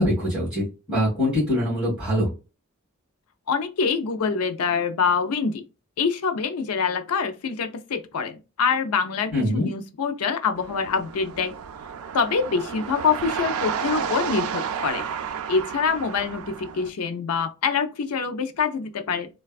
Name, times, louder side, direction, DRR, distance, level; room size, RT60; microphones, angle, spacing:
voice 1, 0.0-2.3 9.3-9.7, left 1 dB, 5° right, 1.7 m, -23 dB
voice 2, 3.5-5.6 6.0-11.5 12.1-15.0 15.5-19.3, left 5 dB, 85° left, 0.4 m, -25 dB
sound 1, 10.5-16.9, right 7 dB, 75° right, 0.4 m, -31 dB
3.2 x 2.2 x 2.3 m
head